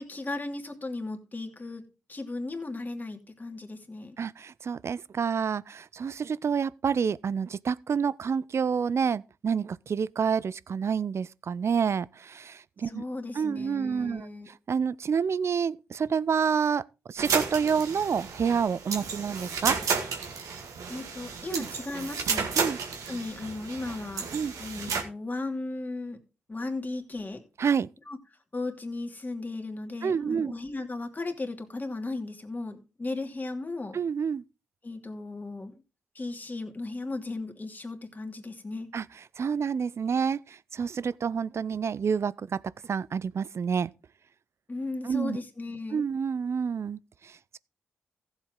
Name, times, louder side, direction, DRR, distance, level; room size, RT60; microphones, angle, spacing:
voice 1, 0.0-1.8 2.1-4.2 12.8-14.5 20.9-22.5 23.1-24.2 24.6-26.2 26.5-27.4 28.1-28.2 28.5-34.0 34.8-35.7 36.1-38.9 44.7-46.0, left 2 dB, 30° left, 2.7 m, -36 dB
voice 2, 4.2-13.0 13.4-19.8 21.5-21.7 22.6-22.8 24.3-24.5 27.6-27.9 30.0-30.5 33.9-34.4 38.9-39.0 39.4-43.9 45.0-45.4 45.9-47.6, right 6 dB, 55° right, 0.5 m, -28 dB
sound 1, 17.2-25.0, right 5 dB, 75° right, 2.0 m, -32 dB
15.0 x 7.4 x 3.8 m
supercardioid pair, 40°, 6 cm